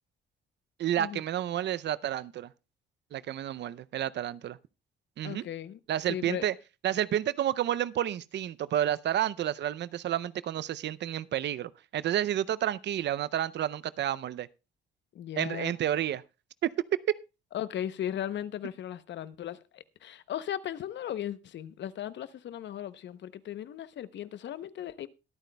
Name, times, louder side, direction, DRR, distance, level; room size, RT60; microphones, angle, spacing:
voice 1, 0.8-2.5 3.1-4.6 5.2-5.4 5.9-6.5 6.8-14.5 15.4-16.2 17.1-17.2, right 11 dB, 65° right, 0.5 m, -30 dB
voice 2, 5.2-5.8 6.1-6.4 15.1-15.7 17.5-25.1, left 10 dB, 65° left, 0.8 m, -37 dB
22.0 x 9.1 x 2.2 m
cardioid pair, 90°, 20 cm